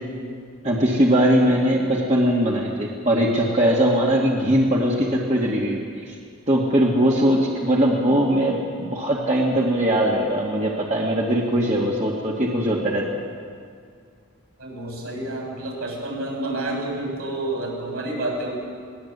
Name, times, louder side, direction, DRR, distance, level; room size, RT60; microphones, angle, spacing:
voice 1, 0.6-6.1 6.5-13.2, equal, 30° right, -3 dB, 2.1 m, -20 dB
voice 2, 14.6-18.5, right 1 dB, 80° right, 0 dB, 7.2 m, -29 dB
21.0 x 19.0 x 8.2 m, 2.2 s
head